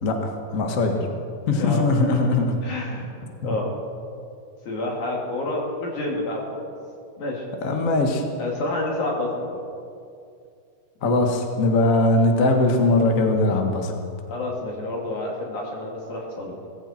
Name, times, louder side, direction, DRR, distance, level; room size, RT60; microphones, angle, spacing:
voice 1, 0.0-1.0 1.5-2.6 7.6-8.2 11.0-13.9, left 2 dB, 35° left, 3 dB, 1.4 m, -20 dB
voice 2, 2.6-3.2 3.4-3.7 4.6-6.7 7.2-7.4 8.4-9.6 14.3-16.6, left 2 dB, 85° left, -2 dB, 4.2 m, -29 dB
19.5 x 15.0 x 4.4 m, 2.4 s
omnidirectional pair, 3.3 m